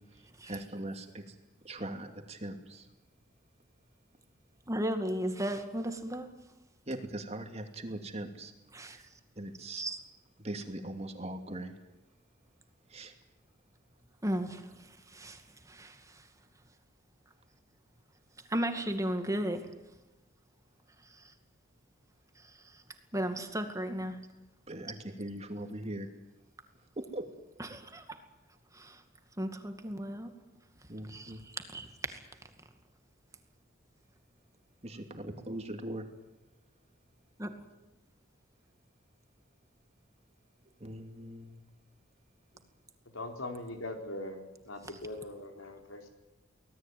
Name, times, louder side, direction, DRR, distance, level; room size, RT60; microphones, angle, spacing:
voice 1, 0.4-1.2 1.6-2.8 6.9-8.5 9.4-9.8 10.4-11.7 12.9-13.1 24.7-26.1 27.0-27.2 30.9-31.4 34.8-36.0 40.8-41.5, right 1 dB, 30° right, 5 dB, 2.7 m, -40 dB
voice 2, 4.7-6.3 8.7-9.0 9.8-10.0 14.2-14.5 15.2-15.3 18.5-19.6 23.1-24.1 27.6-28.0 29.4-30.3 31.1-31.3 31.7-31.9 37.4-37.5, right 1 dB, 15° right, 6 dB, 2.2 m, -33 dB
voice 3, 43.1-46.1, left 2 dB, 90° left, 4 dB, 4.3 m, -41 dB
25.0 x 18.5 x 9.4 m, 1.0 s
head